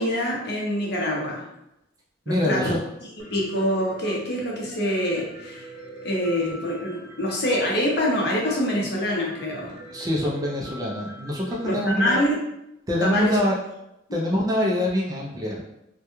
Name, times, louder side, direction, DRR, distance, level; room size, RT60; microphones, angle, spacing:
voice 1, 0.0-1.4 2.3-2.8 3.2-5.6 6.0-9.7 11.6-12.4 13.0-13.4, equal, 55° left, -3 dB, 0.6 m, -25 dB
voice 2, 2.3-2.8 9.9-12.2 12.9-13.6 14.1-15.6, left 1 dB, 20° right, -3 dB, 0.3 m, -25 dB
Piano, 3.2-11.9, right 1 dB, 70° right, 0.5 m, -44 dB
2.2 x 2.2 x 2.9 m, 0.87 s
head